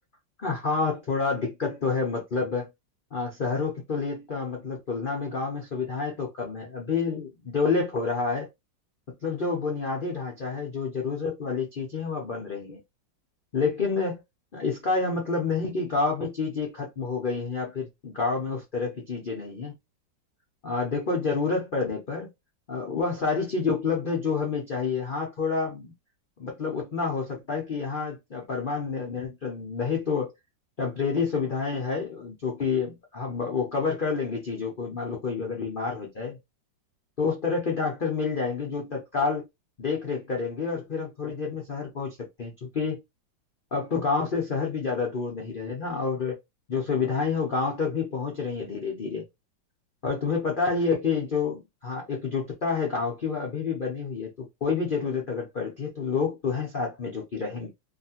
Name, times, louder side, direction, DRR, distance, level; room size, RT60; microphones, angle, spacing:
voice 1, 0.4-2.7 3.1-8.5 9.2-12.8 13.5-14.2 14.5-19.8 20.6-22.3 22.7-25.9 26.4-30.3 30.8-36.4 37.2-39.4 39.8-43.0 43.7-46.4 46.7-49.2 50.0-57.7, left 4 dB, 60° left, 0.5 m, -28 dB
2.9 x 2.4 x 2.8 m
omnidirectional pair, 2.1 m